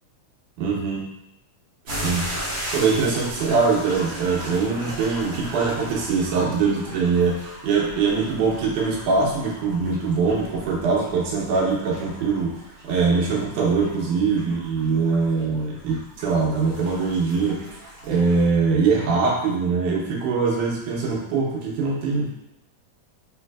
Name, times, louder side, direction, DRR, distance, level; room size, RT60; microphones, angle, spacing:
voice 1, 0.6-1.1 1.9-2.3 2.7-12.5 12.9-17.8 18.1-22.3, right 4 dB, 80° right, -3 dB, 2.4 m, -22 dB
sound 1, 1.9-18.5, equal, 50° right, 1.3 m, -37 dB
4.9 x 3.6 x 2.3 m, 0.87 s
omnidirectional pair, 3.6 m